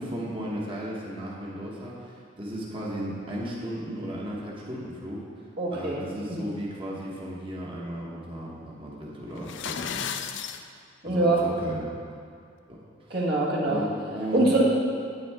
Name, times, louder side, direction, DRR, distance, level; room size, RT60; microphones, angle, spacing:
voice 1, 0.0-5.2 5.7-10.1 11.0-11.8 12.1-12.2 12.7-13.2 13.6-14.5, equal, 30° right, -4 dB, 1.2 m, -35 dB
voice 2, 5.6-6.4 11.0-11.4 13.1-13.8 14.3-14.6, right 2 dB, 55° right, -5 dB, 1.8 m, -24 dB
sound 1, 9.4-10.6, left 8 dB, 70° left, 0.4 m, -33 dB
9.4 x 8.5 x 3.6 m, 2.3 s
head